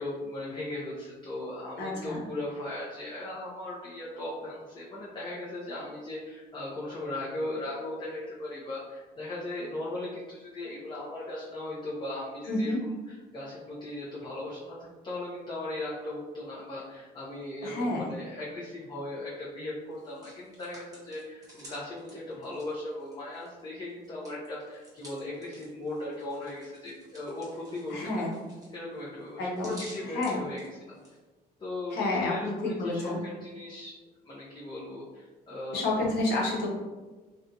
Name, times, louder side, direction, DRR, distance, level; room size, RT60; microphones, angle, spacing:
voice 1, 0.0-12.8 13.3-28.2 28.7-30.9 31.6-33.9 34.2-35.8, left 1 dB, 30° left, -6 dB, 0.6 m, -38 dB
voice 2, 1.8-2.2 12.5-12.8 17.6-18.1 27.9-28.3 29.4-29.8 30.1-30.4 31.9-33.2 35.7-36.7, left 2 dB, 80° left, -3 dB, 0.8 m, -29 dB
Hands, 19.9-23.6 23.9-31.2, equal, 20° right, 1.0 m, -52 dB
2.5 x 2.2 x 2.7 m, 1.3 s
cardioid pair, 110°, 17 cm